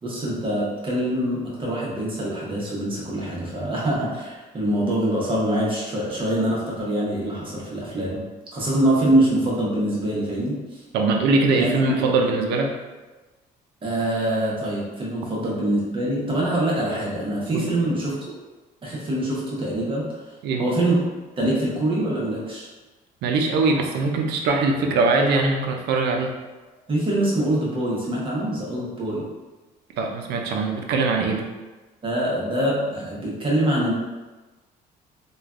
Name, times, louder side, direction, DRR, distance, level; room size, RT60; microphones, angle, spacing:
voice 1, 0.0-8.2 8.5-10.8 11.5-11.9 13.8-18.2 18.8-20.0 20.6-21.0 21.4-22.7 26.9-29.3 32.0-33.9, right 1 dB, 30° right, -5 dB, 0.9 m, -24 dB
voice 2, 10.9-12.7 17.5-17.7 20.4-20.7 23.2-26.3 30.0-31.4, right 3 dB, 80° right, 2 dB, 0.5 m, -22 dB
3.1 x 2.3 x 2.4 m, 1.2 s
cardioid pair, 110°, 17 cm